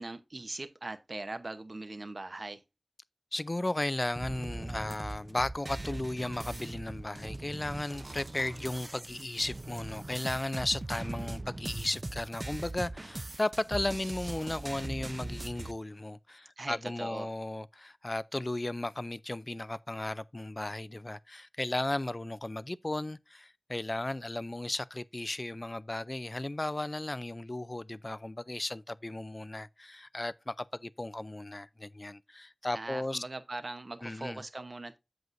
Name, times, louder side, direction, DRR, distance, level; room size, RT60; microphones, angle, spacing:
voice 1, 0.0-2.6 16.6-17.3 32.7-35.0, right 2 dB, 75° right, 0.8 m, -40 dB
voice 2, 3.3-33.2 34.0-34.4, left 1 dB, 45° left, 0.4 m, -35 dB
sound 1, 4.2-15.7, right 2 dB, 55° right, 0.5 m, -40 dB
7.8 x 7.8 x 2.6 m
wide cardioid pair, 45°, 0 cm